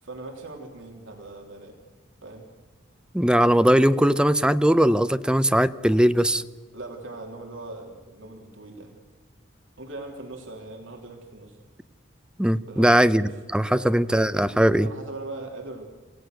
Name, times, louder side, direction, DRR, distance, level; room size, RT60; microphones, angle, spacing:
voice 1, 0.0-1.8 2.2-2.5 6.7-8.9 9.8-11.6 12.7-13.3 13.7-13.9 14.8-15.9, right 2 dB, 70° right, 1 dB, 3.2 m, -40 dB
voice 2, 3.1-6.4 12.4-14.9, equal, 5° right, 12 dB, 0.6 m, -20 dB
28.5 x 16.5 x 6.5 m, 1.4 s
head